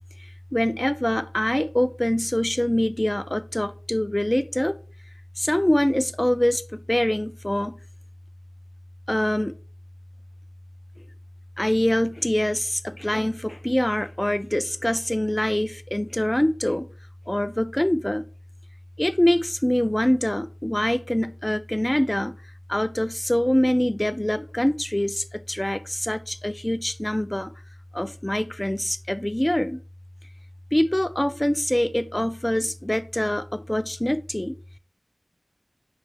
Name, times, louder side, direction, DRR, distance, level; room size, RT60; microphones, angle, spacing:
voice 1, 0.5-4.8 5.4-7.8 9.1-9.5 11.6-16.9 17.3-18.2 19.0-22.3 22.7-27.5 27.9-29.8 30.7-34.5, left 1 dB, 20° left, 0.3 m, -24 dB
4.5 x 2.6 x 3.1 m
wide cardioid pair, 50°, 0 cm